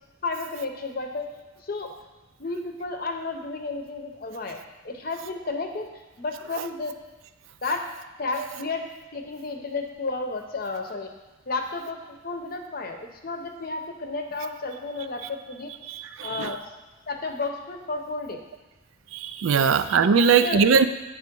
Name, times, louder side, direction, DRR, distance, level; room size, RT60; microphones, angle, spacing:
voice 1, 0.2-1.3 1.6-1.9 2.4-4.6 4.8-5.9 6.2-7.0 7.6-7.8 8.2-11.1 11.5-15.7 16.2-16.6 17.1-18.4 19.5-19.7 20.2-20.7, left 3 dB, 50° left, 4 dB, 0.7 m, -32 dB
voice 2, 15.9-16.5 19.1-20.9, right 6 dB, 85° right, 11 dB, 0.4 m, -20 dB
9.4 x 3.1 x 5.2 m, 1.1 s
head